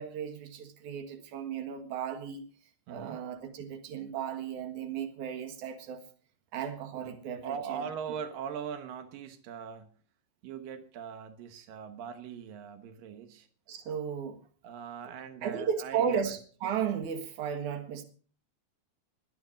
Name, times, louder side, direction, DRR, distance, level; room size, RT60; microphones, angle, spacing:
voice 1, 0.0-2.4 2.9-6.0 6.5-7.9 13.7-14.4 15.4-18.0, right 7 dB, 65° right, 2.9 m, -35 dB
voice 2, 2.9-3.2 6.9-7.1 7.4-9.9 10.4-13.5 14.6-16.4, right 7 dB, 90° right, 2.9 m, -40 dB
22.0 x 8.3 x 5.1 m
omnidirectional pair, 3.8 m